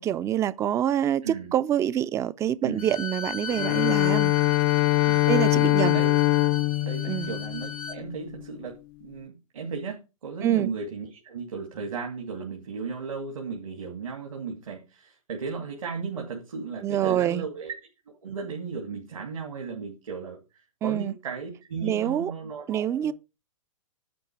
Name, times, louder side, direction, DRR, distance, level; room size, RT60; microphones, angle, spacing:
voice 1, 0.0-4.3 5.3-6.0 7.1-7.3 10.4-10.7 16.8-17.4 20.8-21.1 21.8-22.3 22.7-23.1, right 11 dB, 15° right, 0.4 m, -26 dB
Bowed string instrument, 2.8-8.0, left 5 dB, 90° left, 1.1 m, -37 dB
Bowed string instrument 2, 3.5-8.4, left 17 dB, 45° left, 0.5 m, -23 dB
voice 2, 6.8-8.7 9.0-17.7 18.1-20.4 20.8-23.1, right 5 dB, 70° right, 2.5 m, -35 dB
10.5 x 4.5 x 7.1 m
hypercardioid pair, 115°, 18 cm